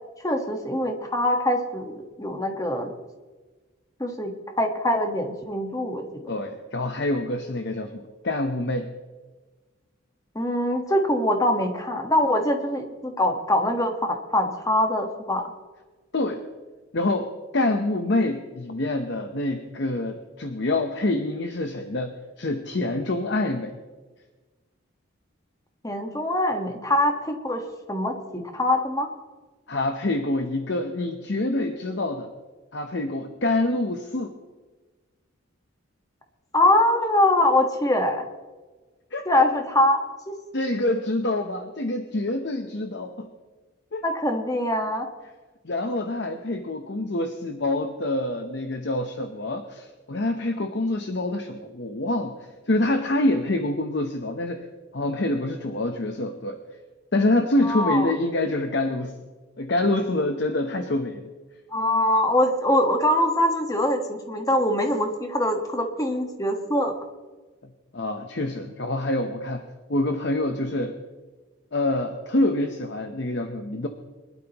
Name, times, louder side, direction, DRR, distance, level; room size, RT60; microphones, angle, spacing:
voice 1, 0.2-2.9 4.0-6.3 10.3-15.4 25.8-27.6 27.9-29.1 36.5-38.2 39.3-40.4 44.0-45.1 57.6-58.1 61.7-66.9, left 1 dB, 15° left, 4 dB, 1.3 m, -23 dB
voice 2, 6.3-8.9 16.1-16.4 16.9-23.7 29.7-32.3 32.7-34.3 39.1-39.5 40.5-43.3 43.9-44.0 45.6-52.3 52.7-54.6 54.9-56.6 57.1-59.1 59.6-61.3 67.9-71.0 71.7-73.9, left 2 dB, 55° left, 6 dB, 0.8 m, -26 dB
23.0 x 12.0 x 3.0 m, 1.3 s
head